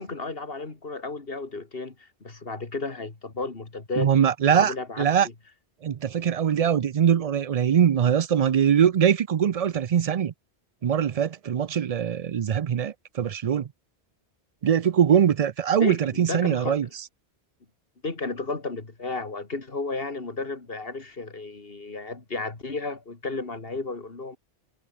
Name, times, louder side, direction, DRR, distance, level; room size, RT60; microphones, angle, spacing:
voice 1, 0.0-4.1 4.5-5.2 15.8-16.9 18.0-24.4, left 3 dB, 60° left, 2.7 m, -33 dB
voice 2, 4.0-5.3 5.8-10.3 10.8-13.7 14.6-16.9, right 8 dB, 50° right, 0.4 m, -22 dB
omnidirectional pair, 1.1 m